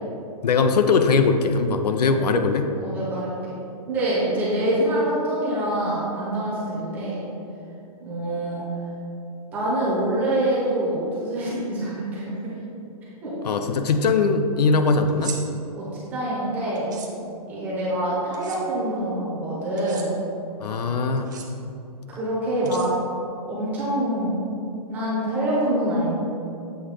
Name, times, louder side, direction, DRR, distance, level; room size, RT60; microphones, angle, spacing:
voice 1, 0.4-2.7 13.4-15.3 20.6-21.3 21.7-21.8, left 4 dB, 85° left, 7 dB, 0.6 m, -20 dB
voice 2, 2.8-3.6 3.9-7.2 8.0-8.6 9.5-12.5 13.2-13.3 15.7-16.9 17.5-20.1 20.8-21.0 22.1-22.9 23.5-24.4 24.9-26.1, right 1 dB, 10° right, -8 dB, 0.9 m, -25 dB
sound 1, 15.1-15.4 16.7-17.1 18.3-18.6 19.8-20.1 21.2-21.5 22.6-23.2, right 6 dB, 30° right, 0.5 m, -37 dB
7.9 x 2.9 x 4.9 m, 2.7 s
hypercardioid pair, 180°, 20 cm